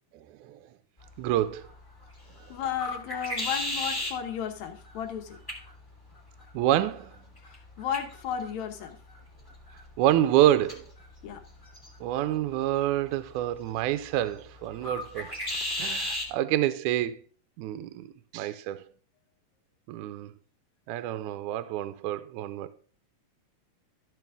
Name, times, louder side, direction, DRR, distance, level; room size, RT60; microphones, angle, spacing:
voice 1, 0.1-0.6 1.2-1.7 6.5-7.3 10.0-10.9 12.0-15.5 15.8-17.2 17.6-18.8 19.9-20.3 20.9-22.8, right 13 dB, 80° right, 1.9 m, -27 dB
sound 1, 1.0-16.3, left 1 dB, 10° left, 1.0 m, -38 dB
voice 2, 2.5-5.4 7.8-9.0 11.2-11.4, left 8 dB, 70° left, 2.0 m, -33 dB
12.5 x 6.0 x 3.5 m
omnidirectional pair, 3.9 m